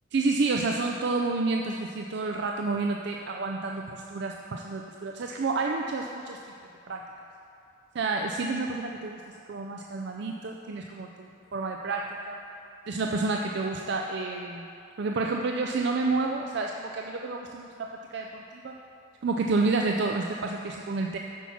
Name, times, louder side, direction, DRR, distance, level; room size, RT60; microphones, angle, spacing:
voice 1, 0.1-6.4 6.9-7.0 7.9-9.2 9.5-12.4 12.9-14.7 15.0-18.7 19.2-21.2, right 3 dB, 55° right, 2 dB, 0.4 m, -29 dB
8.2 x 6.1 x 5.7 m, 2.6 s
head